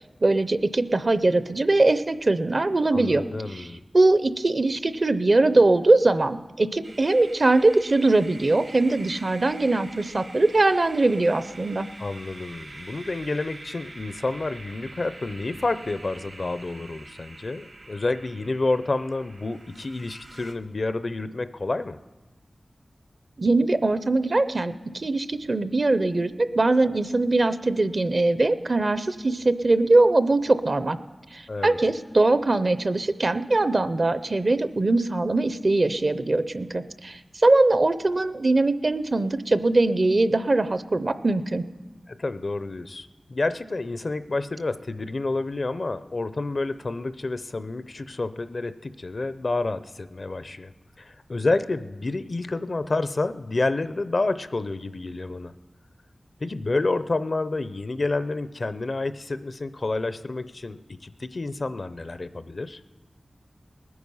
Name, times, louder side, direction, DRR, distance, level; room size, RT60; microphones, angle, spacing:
voice 1, 0.2-3.2 3.5-3.7 3.9-11.9 23.4-31.0 31.3-41.6, right 2 dB, 50° right, 12 dB, 0.6 m, -21 dB
voice 2, 2.9-3.8 12.0-22.0 31.5-31.8 42.1-50.7 51.0-55.5 56.4-62.8, left 2 dB, 55° left, 13 dB, 0.5 m, -29 dB
sound 1, 6.8-20.5, right 2 dB, 65° right, 1.1 m, -45 dB
20.0 x 9.5 x 5.5 m, 1.2 s
wide cardioid pair, 80°, 0 cm